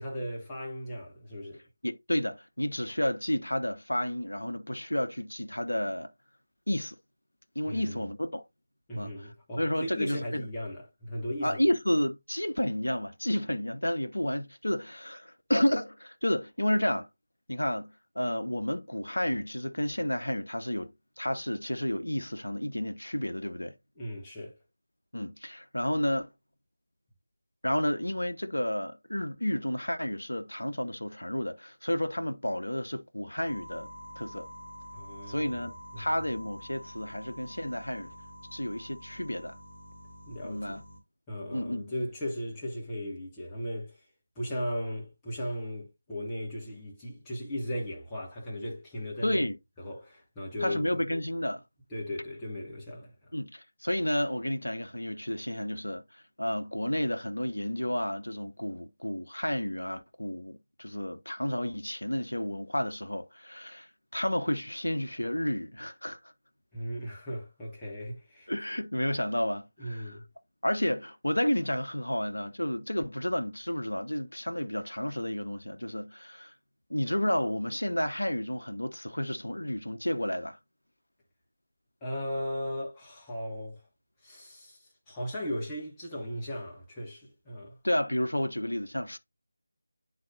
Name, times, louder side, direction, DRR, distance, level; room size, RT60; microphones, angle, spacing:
voice 1, 0.0-1.6 7.6-8.0 8.9-11.6 24.0-24.5 34.9-36.1 40.3-40.8 41.3-44.0 44.3-49.5 49.8-51.0 51.9-53.3 66.7-68.5 69.8-70.2 82.0-83.8 84.2-87.8, equal, 10° left, 1.1 m, -37 dB
voice 2, 1.8-6.1 6.7-7.0 7.6-8.4 8.9-9.1 9.6-10.4 11.4-17.1 17.5-23.8 25.1-26.3 27.6-33.9 34.2-34.5 35.3-38.1 38.5-39.6 40.4-40.8 41.5-41.8 49.2-49.6 50.6-51.6 53.3-66.2 68.5-70.2 70.6-76.5 76.9-80.6 87.8-89.2, left 1 dB, 75° left, 0.7 m, -31 dB
sound 1, 33.4-41.0, equal, 35° left, 2.1 m, -47 dB
9.5 x 4.1 x 2.4 m
figure-of-eight pair, 160°, 0 cm